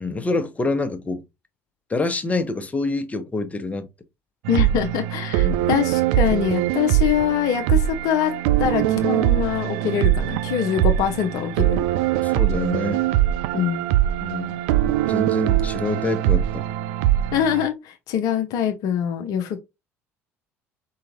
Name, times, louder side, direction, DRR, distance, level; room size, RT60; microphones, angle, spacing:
voice 1, 0.0-1.2 1.9-3.9 5.4-5.7 12.2-13.0 14.2-14.6 15.1-16.6, left 3 dB, 20° left, 1.0 m, -26 dB
voice 2, 4.5-8.3 8.6-11.8 13.5-13.8 17.3-19.6, left 9 dB, 60° left, 0.6 m, -24 dB
sound 1, 4.5-17.7, right 13 dB, 65° right, 0.3 m, -22 dB
4.6 x 3.8 x 2.9 m
figure-of-eight pair, 55°, 7 cm